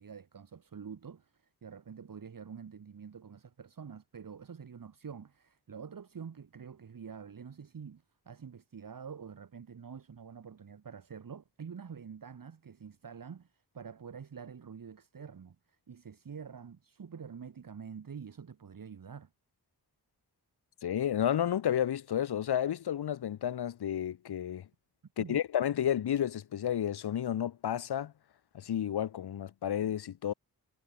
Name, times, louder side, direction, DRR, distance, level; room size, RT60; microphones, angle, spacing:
voice 1, 0.0-19.3 25.2-25.4, right 6 dB, 60° right, 1.6 m, -47 dB
voice 2, 20.8-24.7 25.2-28.1 28.5-30.3, left 10 dB, 80° left, 0.8 m, -31 dB
wide cardioid pair, 85°, 39 cm